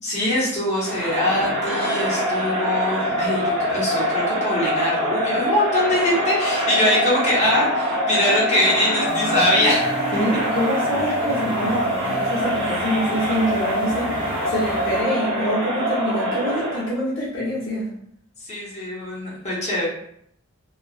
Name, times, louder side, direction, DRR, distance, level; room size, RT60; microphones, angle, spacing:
voice 1, 0.0-10.0 18.4-19.9, left 1 dB, 35° left, -8 dB, 1.0 m, -23 dB
Crowd, 0.8-16.9, equal, 55° right, 1.2 m, -24 dB
sound 1, 9.1-15.0, equal, 25° right, 0.4 m, -38 dB
voice 2, 10.1-17.9, equal, 65° left, -7 dB, 0.9 m, -25 dB
2.6 x 2.3 x 2.3 m, 0.69 s
head